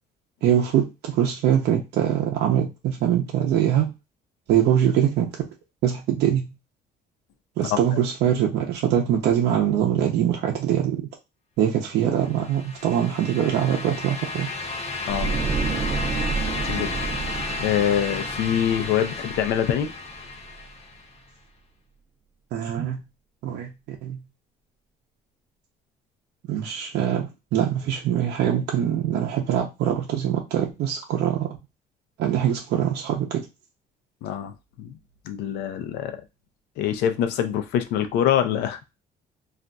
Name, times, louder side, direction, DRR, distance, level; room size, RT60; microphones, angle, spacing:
voice 1, 0.4-3.9 4.5-5.5 5.8-6.5 7.6-11.1 11.6-14.5 22.5-23.0 23.4-24.2 26.5-31.5 32.2-33.5, right 10 dB, 75° right, 0.6 m, -23 dB
sound 1, 12.2-21.1, left 3 dB, 35° left, 0.8 m, -33 dB
voice 2, 15.1-15.4 16.6-16.9 17.6-19.9 34.2-34.9 35.3-36.2 36.8-39.0, left 10 dB, 90° left, 0.5 m, -25 dB
sound 2, 15.1-20.2 20.5-20.7, right 5 dB, 30° right, 0.5 m, -30 dB
2.5 x 2.3 x 3.8 m
cardioid pair, 110°, 17 cm